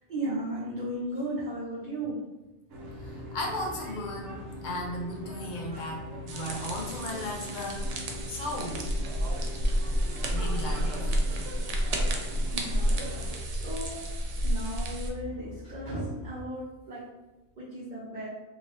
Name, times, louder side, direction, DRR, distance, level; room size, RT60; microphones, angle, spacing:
voice 1, 0.1-2.2 9.3-9.4 10.6-10.8 12.5-13.1 13.5-14.0 14.4-17.0 17.6-18.3, right 1 dB, 50° right, -9 dB, 0.8 m, -35 dB
sound 1, 2.7-16.4, left 3 dB, 85° left, 1.1 m, -47 dB
sound 2, 2.7-13.4, equal, 90° right, 1.0 m, -42 dB
voice 2, 3.0-7.9 8.3-8.9 10.3-11.1, left 1 dB, 50° left, -1 dB, 0.7 m, -36 dB
sound 3, 6.3-15.1, equal, 65° right, 0.3 m, -30 dB
2.8 x 2.7 x 3.2 m, 1.1 s
omnidirectional pair, 1.2 m